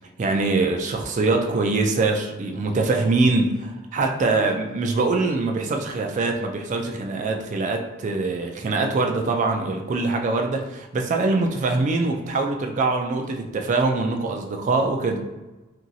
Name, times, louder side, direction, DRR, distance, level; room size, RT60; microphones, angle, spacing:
voice 1, 0.2-15.2, right 3 dB, 35° right, 3 dB, 0.3 m, -23 dB
2.8 x 2.6 x 2.6 m, 1.1 s
head